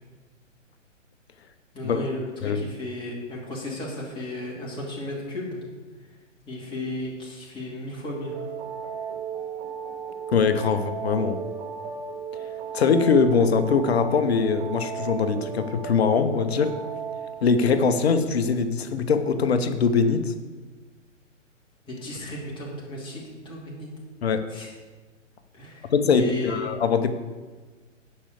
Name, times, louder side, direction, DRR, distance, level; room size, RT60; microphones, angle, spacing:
voice 1, 1.7-5.6 6.5-8.3 21.9-23.9 24.5-24.7 25.5-26.6, left 2 dB, 15° left, -5 dB, 2.7 m, -34 dB
sound 1, 8.2-17.4, right 7 dB, 35° right, 1.1 m, -35 dB
voice 2, 10.3-11.4 12.7-16.7 17.4-20.3 24.2-24.5 25.9-27.1, left 5 dB, 55° left, 9 dB, 1.0 m, -22 dB
10.0 x 5.5 x 6.8 m, 1.3 s
figure-of-eight pair, 120°, 38 cm